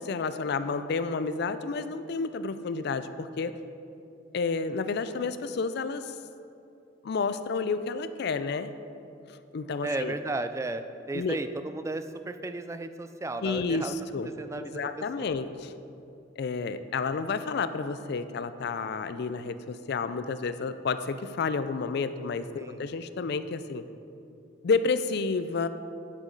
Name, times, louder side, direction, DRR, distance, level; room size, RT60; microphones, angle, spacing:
voice 1, 0.0-3.6 4.3-6.2 7.0-8.7 9.3-10.2 11.1-11.4 13.4-14.3 14.6-15.7 16.4-23.8 24.6-25.7, left 4 dB, 55° left, 12 dB, 0.4 m, -30 dB
voice 2, 9.8-13.9 14.4-15.3 22.6-22.8, right 2 dB, 15° right, 9 dB, 0.3 m, -34 dB
9.0 x 8.2 x 3.9 m, 2.7 s
head